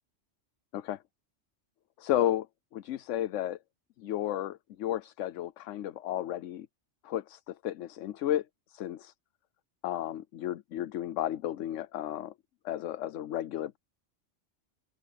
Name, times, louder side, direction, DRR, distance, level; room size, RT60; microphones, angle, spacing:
voice 1, 2.0-2.5 2.7-3.6 4.0-6.7 7.0-8.4 8.7-9.1 9.8-12.3 12.6-13.8, left 12 dB, 80° left, 1.0 m, -33 dB
open air
omnidirectional pair, 1.3 m